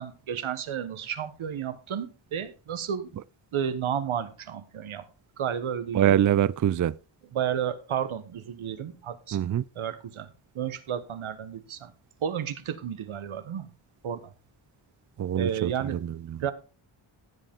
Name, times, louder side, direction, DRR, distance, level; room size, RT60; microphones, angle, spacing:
voice 1, 0.0-3.1 3.5-5.1 5.4-6.2 7.3-9.5 9.7-10.3 10.5-11.9 12.2-13.7 14.0-14.3 15.3-16.0 16.4-16.5, right 8 dB, 80° right, 1.3 m, -32 dB
voice 2, 5.9-6.9 9.3-9.6 15.2-15.7 16.0-16.4, right 10 dB, 40° right, 0.4 m, -24 dB
14.5 x 7.7 x 3.6 m
cardioid pair, 60°, 48 cm